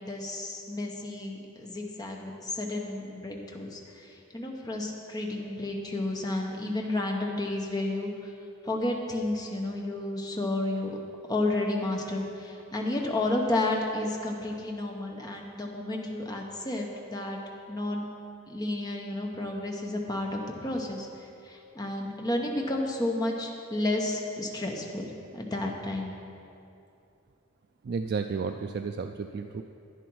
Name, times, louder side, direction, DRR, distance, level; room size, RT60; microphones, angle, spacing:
voice 1, 0.0-8.1 8.6-10.9 11.3-17.4 17.7-18.1 18.5-21.1 21.4-25.1 25.3-26.1, left 2 dB, 20° left, 0 dB, 1.0 m, -31 dB
voice 2, 27.8-29.6, right 5 dB, 50° right, 6 dB, 0.3 m, -32 dB
11.0 x 9.9 x 4.7 m, 2.7 s
head